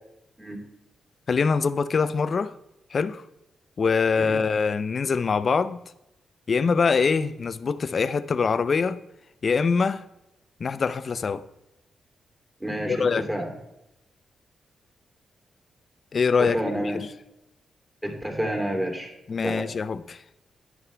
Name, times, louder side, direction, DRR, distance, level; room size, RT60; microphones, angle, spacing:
voice 1, 1.3-2.5 2.9-3.2 3.8-5.8 6.5-9.0 9.4-10.0 10.6-11.4 12.9-13.3 16.1-17.1 19.3-20.4, left 5 dB, 45° left, 0.6 m, -24 dB
voice 2, 12.6-13.5 16.4-17.0 18.0-19.1 19.4-19.7, right 1 dB, 10° right, 2.9 m, -29 dB
11.0 x 11.0 x 3.4 m
cardioid pair, 110°, 0 cm